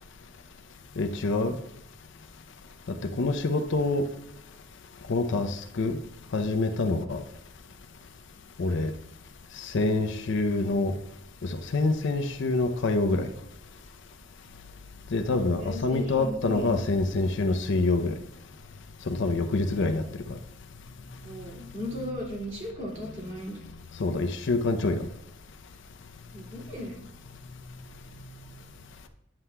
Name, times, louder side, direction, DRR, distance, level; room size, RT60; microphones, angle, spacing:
voice 1, 1.0-1.6 2.9-4.1 5.1-6.0 6.3-7.2 8.6-8.9 9.6-10.9 11.4-13.3 15.1-18.1 19.1-20.0 24.0-25.1, left 3 dB, 65° left, 6 dB, 0.5 m, -26 dB
voice 2, 15.6-16.8 21.2-23.6 26.3-27.1, left 1 dB, 35° right, -5 dB, 2.4 m, -37 dB
9.6 x 7.5 x 2.2 m, 0.77 s
head